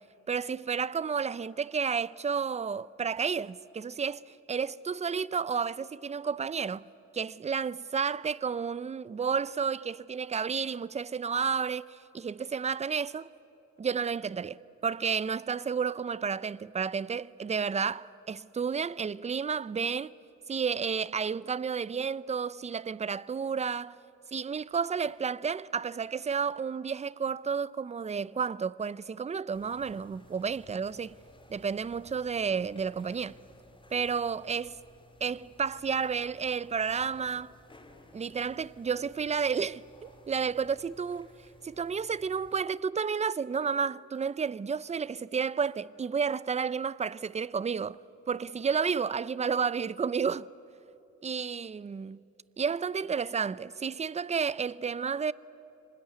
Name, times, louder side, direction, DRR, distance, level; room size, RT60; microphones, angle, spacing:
voice 1, 0.3-4.2 4.5-6.8 7.1-13.3 13.8-20.1 20.5-24.0 24.3-31.2 31.5-33.3 33.9-34.8 35.2-37.5 38.1-41.3 41.6-48.0 48.3-50.5 51.2-52.2 52.6-55.3, right 6 dB, 25° right, 0.5 m, -31 dB
sound 1, 29.5-42.6, left 2 dB, 15° left, 2.9 m, -57 dB
24.5 x 20.0 x 9.9 m
cardioid pair, 90°, 30 cm